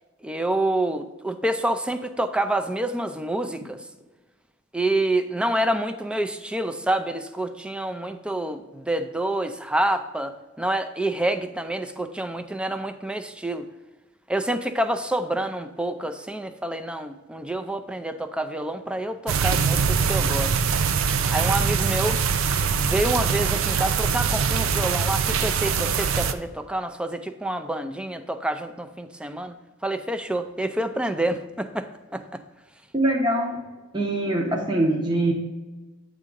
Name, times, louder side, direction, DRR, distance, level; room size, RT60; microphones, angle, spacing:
voice 1, 0.2-3.8 4.7-13.7 14.3-20.6 21.3-22.2 22.8-29.6 29.8-31.9 32.1-32.4, right 1 dB, 5° right, 9 dB, 0.4 m, -27 dB
sound 1, 19.3-26.3, right 6 dB, 90° right, 0.5 m, -23 dB
voice 2, 32.9-33.6 33.9-35.3, right 1 dB, 25° right, 0 dB, 0.9 m, -23 dB
8.8 x 3.7 x 5.2 m, 1.2 s
head